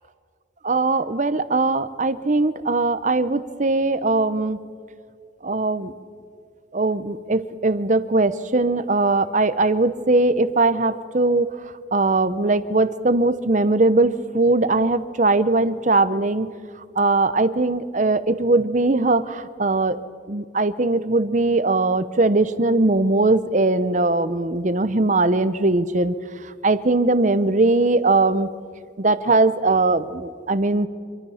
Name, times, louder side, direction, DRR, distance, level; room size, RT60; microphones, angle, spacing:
voice 1, 0.6-4.6 5.4-5.9 6.7-11.5 11.9-16.5 17.0-20.0 20.3-26.1 26.6-28.5 29.0-30.9, right 2 dB, 40° right, 13 dB, 0.8 m, -20 dB
26.5 x 23.5 x 5.8 m, 2.2 s
head